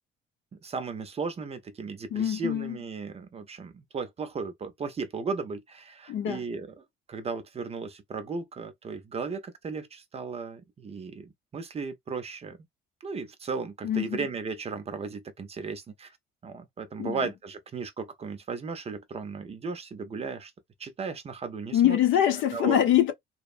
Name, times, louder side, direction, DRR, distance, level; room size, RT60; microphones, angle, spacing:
voice 1, 0.5-6.7 7.1-12.6 13.0-16.2 16.4-20.5 20.8-22.0 22.5-22.8, right 4 dB, 30° right, 0.6 m, -35 dB
voice 2, 2.1-2.8 6.1-6.4 13.8-14.3 17.0-17.3 21.7-23.1, left 11 dB, 65° left, 0.8 m, -24 dB
2.8 x 2.1 x 2.5 m
cardioid pair, 125°, 21 cm